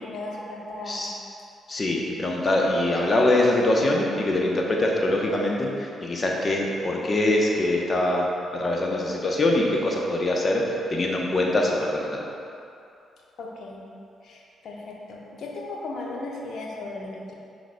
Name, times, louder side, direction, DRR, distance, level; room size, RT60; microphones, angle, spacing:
voice 1, 0.0-1.1 13.4-13.8 14.2-17.3, left 2 dB, 60° left, -2 dB, 1.0 m, -36 dB
voice 2, 1.7-12.2, left 1 dB, 35° left, -1 dB, 1.0 m, -23 dB
11.0 x 4.0 x 2.3 m, 2.6 s
figure-of-eight pair, 40°, 0 cm